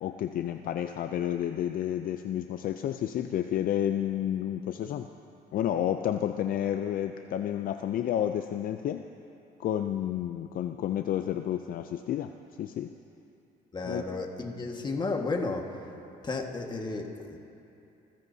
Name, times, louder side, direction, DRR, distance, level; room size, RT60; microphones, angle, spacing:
voice 1, 0.0-5.1 5.5-9.0 9.6-12.3 12.6-12.9 13.8-14.1, left 10 dB, 55° left, 7 dB, 0.5 m, -30 dB
voice 2, 13.7-15.7 16.2-17.4, left 3 dB, 25° left, 2 dB, 1.6 m, -33 dB
27.5 x 15.5 x 2.8 m, 2.8 s
cardioid pair, 110°, 17 cm